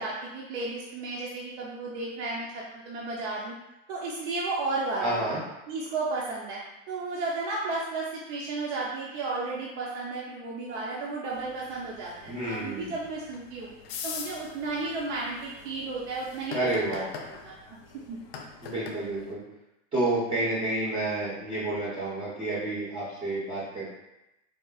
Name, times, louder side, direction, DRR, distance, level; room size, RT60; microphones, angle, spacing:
voice 1, 0.0-3.5 3.9-5.4 5.7-6.6 6.9-13.7 14.0-17.0 17.3-17.8 18.1-18.2, right 3 dB, 60° right, -4 dB, 0.6 m, -33 dB
voice 2, 5.0-5.4 12.3-12.9 16.5-17.0 18.6-19.4 19.9-23.9, right 2 dB, 15° right, -8 dB, 0.6 m, -29 dB
Making Coffee in a Coffee Shop Siem Reap Cambodia, 11.3-19.3, left 5 dB, 55° left, 0.4 m, -44 dB
3.6 x 2.1 x 2.3 m, 0.92 s
supercardioid pair, 150°, 36 cm